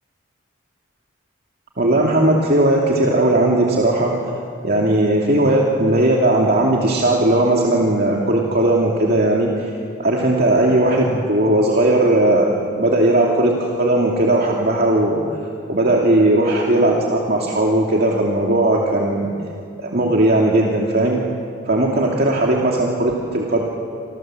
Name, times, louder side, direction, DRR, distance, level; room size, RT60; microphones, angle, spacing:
voice 1, 1.8-4.1 4.6-9.7 10.0-12.5 12.7-15.2 15.7-19.3 19.8-21.2 21.7-23.6, right 1 dB, 50° right, -2 dB, 2.5 m, -17 dB
27.5 x 27.0 x 7.7 m, 2.4 s
head